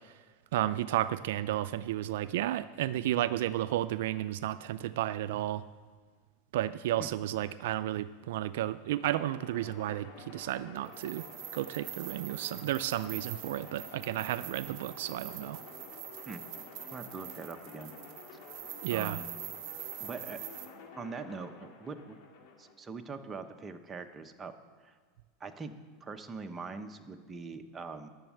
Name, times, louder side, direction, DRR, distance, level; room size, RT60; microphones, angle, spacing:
voice 1, 0.5-5.6 6.5-11.3 11.5-15.6 18.8-19.2, right 13 dB, 75° right, 14 dB, 0.3 m, -32 dB
sound 1, 9.0-22.7, left 4 dB, 55° left, 2.3 m, -50 dB
sound 2, 10.9-20.7, right 12 dB, 50° right, 1.2 m, -45 dB
voice 2, 16.9-17.9 18.9-19.2 20.0-20.4 21.0-22.2 22.6-24.5 24.8-25.0 25.4-28.1, right 4 dB, 15° right, 6 dB, 0.9 m, -42 dB
11.0 x 7.2 x 9.1 m, 1.5 s
supercardioid pair, 140°, 0 cm